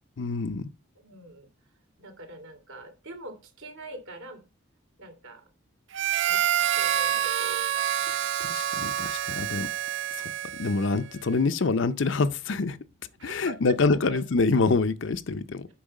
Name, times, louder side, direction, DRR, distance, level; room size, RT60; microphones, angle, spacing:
voice 1, 0.2-0.7 8.1-9.7 10.6-12.8 13.2-15.7, left 3 dB, 70° left, 0.6 m, -26 dB
voice 2, 1.0-1.5 2.0-4.4 5.0-5.4 6.3-7.9 9.5-9.7 13.2-14.2, right 2 dB, 80° right, 2.8 m, -44 dB
Harmonica, 5.9-11.0, right 10 dB, 65° right, 0.4 m, -27 dB
8.7 x 5.5 x 5.3 m
head